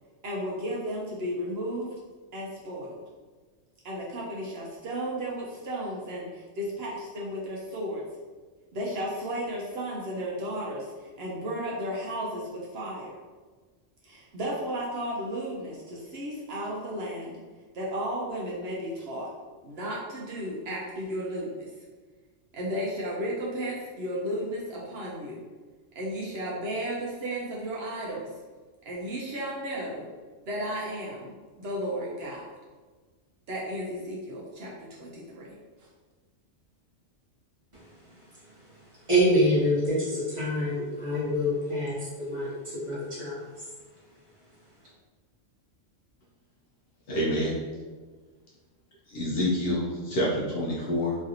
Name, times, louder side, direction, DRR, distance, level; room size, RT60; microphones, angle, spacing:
voice 1, 0.2-1.9 2.3-3.0 3.8-8.0 8.7-13.1 14.0-17.3 17.7-19.3 19.6-21.6 22.5-25.4 26.0-28.3 28.9-30.1 30.4-32.4 33.5-35.5 35.8-35.9, equal, 65° right, -5 dB, 0.8 m, -34 dB
voice 2, 39.1-43.5, equal, 25° right, -10 dB, 1.2 m, -26 dB
voice 3, 47.1-47.5 49.1-51.2, equal, 60° left, -4 dB, 0.8 m, -27 dB
3.1 x 2.7 x 2.5 m, 1.4 s
omnidirectional pair, 1.3 m